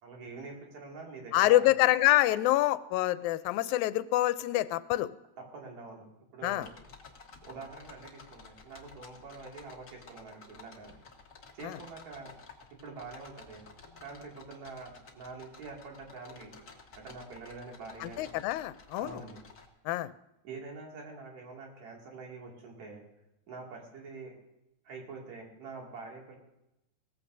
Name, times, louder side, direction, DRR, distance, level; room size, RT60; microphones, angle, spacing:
voice 1, 0.0-1.7 5.4-6.0 6.3-6.7 7.4-10.9 11.5-12.4 12.8-13.6 14.0-16.5 17.0-18.3 19.0-19.4 20.4-23.0 23.5-24.4 24.9-26.4, right 4 dB, 70° right, -1 dB, 3.7 m, -45 dB
voice 2, 1.3-5.1 6.4-6.7 11.6-11.8 18.0-19.2 19.9-20.1, left 15 dB, 90° left, 15 dB, 2.0 m, -26 dB
sound 1, 6.5-19.7, left 4 dB, 45° left, 1.1 m, -53 dB
18.0 x 14.5 x 2.7 m, 0.88 s
omnidirectional pair, 3.3 m